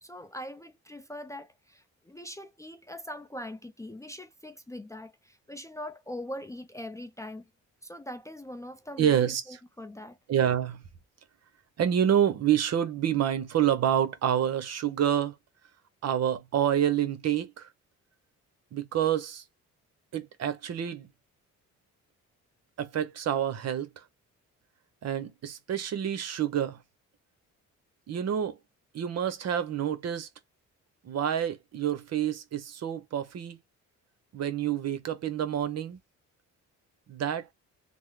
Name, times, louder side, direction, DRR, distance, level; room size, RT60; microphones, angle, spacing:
voice 1, 0.0-7.5 7.8-10.2, left 1 dB, 10° left, 0.4 m, -42 dB
voice 2, 9.0-9.6 10.3-10.8 11.8-15.4 16.0-17.7 18.7-19.4 20.1-21.1 22.8-24.0 25.0-26.8 28.1-28.6 28.9-30.3 31.0-33.6 34.3-36.0 37.1-37.5, right 9 dB, 55° right, 0.8 m, -28 dB
3.5 x 2.0 x 3.1 m
cardioid pair, 90°, 30 cm